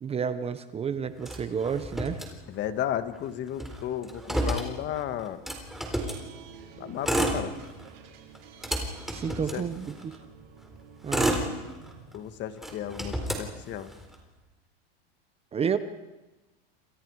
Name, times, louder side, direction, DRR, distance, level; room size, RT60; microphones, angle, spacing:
voice 1, 0.0-2.2 9.1-9.9 11.0-11.3 15.5-15.8, right 7 dB, 20° right, 11 dB, 1.0 m, -30 dB
Motor vehicle (road), 1.2-2.8 3.1-3.2 3.5-6.2 6.9-7.9 8.3-10.2 10.7-12.2 12.6-14.2, right 1 dB, ahead, 4.1 m, -31 dB
voice 2, 2.5-5.4 6.8-7.5 9.3-9.6 12.1-13.9, left 10 dB, 35° left, 10 dB, 1.8 m, -34 dB
sound 1, 5.9-13.3, right 7 dB, 75° right, 5.6 m, -51 dB
29.0 x 27.0 x 4.9 m, 1.1 s
supercardioid pair, 130°, 30 cm